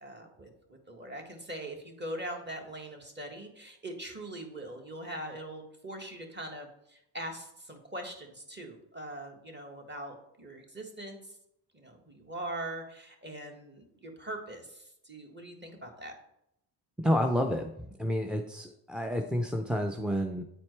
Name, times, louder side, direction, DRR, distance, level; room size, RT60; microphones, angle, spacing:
voice 1, 0.0-11.3 11.7-16.1, right 1 dB, 20° right, 2 dB, 1.7 m, -42 dB
voice 2, 17.0-20.4, equal, ahead, 4 dB, 0.5 m, -30 dB
9.2 x 4.3 x 3.3 m, 0.78 s
supercardioid pair, 70°, 48 cm